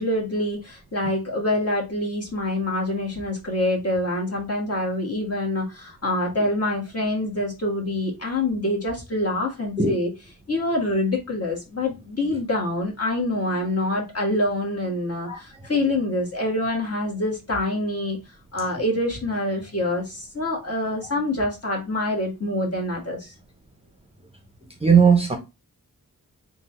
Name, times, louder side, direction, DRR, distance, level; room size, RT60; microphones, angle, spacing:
voice 1, 0.0-10.1 10.5-18.2 18.5-23.3, left 1 dB, 40° left, 1.6 m, -26 dB
voice 2, 24.8-25.4, right 5 dB, 15° right, 0.7 m, -17 dB
3.7 x 2.5 x 4.2 m
wide cardioid pair, 80°, 37 cm